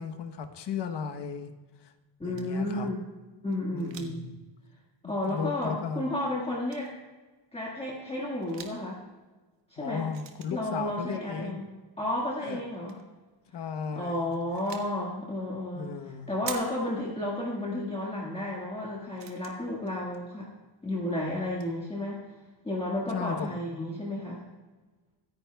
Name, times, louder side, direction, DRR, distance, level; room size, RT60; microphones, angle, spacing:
voice 1, 0.0-1.5 1.8-1.9 2.2-2.9 3.7-4.4 5.3-6.2 9.8-11.6 12.4-12.6 13.5-14.3 15.8-16.4 23.1-23.9, left 6 dB, 60° left, 7 dB, 1.0 m, -36 dB
voice 2, 2.2-3.0 3.4-4.3 5.0-6.9 7.5-9.0 9.7-10.1 10.5-11.7 12.0-13.0 13.9-15.9 16.3-20.5 20.8-22.2 22.6-24.4, left 1 dB, 10° left, -5 dB, 1.7 m, -32 dB
sound 1, 2.3-2.6 3.5-4.2 4.5-4.6 5.7-5.8 6.7-6.9 8.3-8.9 10.1-10.8 12.6-13.1 14.1-15.0 16.5-17.0 18.2-18.3 18.7-18.8 19.2-20.2 21.2-21.3 21.5-21.8, right 7 dB, 65° right, 1.4 m, -45 dB
26.0 x 10.0 x 2.3 m, 1.3 s
wide cardioid pair, 170°, 48 cm